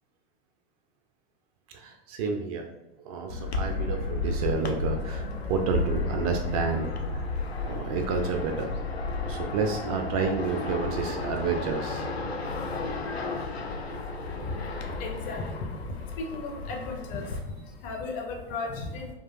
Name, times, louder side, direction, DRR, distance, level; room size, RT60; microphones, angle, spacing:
voice 1, 1.7-2.7 3.0-7.3 7.6-8.7 9.2-12.0, right 5 dB, 40° right, 4 dB, 0.4 m, -30 dB
sound 1, 3.3-17.4, left 3 dB, 90° left, 0.5 m, -32 dB
voice 2, 14.4-19.1, left 3 dB, 30° left, 2 dB, 0.5 m, -36 dB
3.7 x 2.3 x 2.3 m, 1.1 s
figure-of-eight pair, 90°, 31 cm